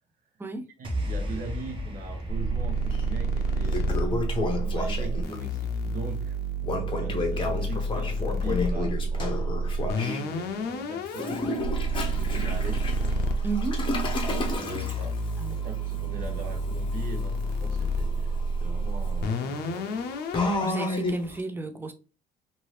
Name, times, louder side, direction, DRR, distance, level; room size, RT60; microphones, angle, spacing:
sound 1, 0.8-7.3, equal, 30° right, 1.0 m, -37 dB
voice 1, 0.8-6.4 7.0-11.4 11.9-12.8 14.3-15.1 15.5-20.1, right 3 dB, 55° right, 0.9 m, -40 dB
sound 2, 2.3-20.9, right 1 dB, 75° left, 0.6 m, -29 dB
Toilet flush, 2.9-3.0 3.5-5.4 6.6-10.2 11.1-21.4, left 2 dB, 30° left, 0.8 m, -32 dB
voice 2, 13.4-13.8 14.7-14.8 15.4-15.5 20.6-21.9, right 3 dB, 10° right, 0.5 m, -33 dB
2.7 x 2.7 x 3.1 m
cardioid pair, 110°, 17 cm